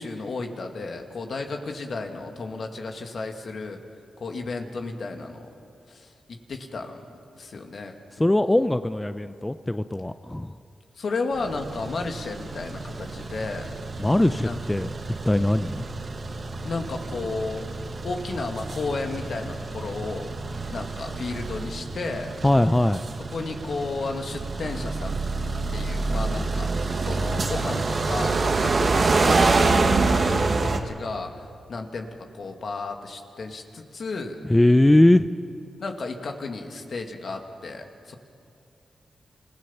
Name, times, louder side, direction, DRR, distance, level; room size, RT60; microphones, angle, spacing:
voice 1, 0.0-3.8 4.2-5.5 5.9-7.0 7.3-8.3 11.0-13.8 14.4-14.6 16.6-17.7 18.0-20.3 20.7-22.4 23.3-25.2 25.7-26.7 27.0-32.1 32.4-34.4 35.8-38.2, left 3 dB, 65° left, 4 dB, 2.1 m, -33 dB
voice 2, 8.2-10.5 14.0-14.9 15.2-15.8 22.4-23.0 34.5-35.3, left 1 dB, 15° left, 11 dB, 0.6 m, -20 dB
sound 1, 11.4-30.8, right 3 dB, 55° right, 1.7 m, -27 dB
28.0 x 16.5 x 5.8 m, 2.4 s
supercardioid pair, 45°, 0 cm